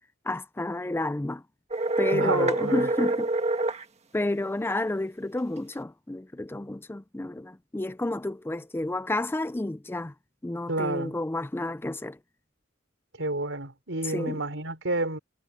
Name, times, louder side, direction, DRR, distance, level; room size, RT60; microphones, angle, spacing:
voice 1, 0.3-1.4 2.0-3.3 4.1-10.1 10.4-12.2 14.1-14.4, left 2 dB, 10° left, 0.4 m, -30 dB
sound 1, 1.7-3.8, right 2 dB, 35° right, 1.6 m, -26 dB
voice 2, 2.1-2.9 10.7-11.2 13.2-15.2, right 2 dB, 70° right, 6.0 m, -30 dB
head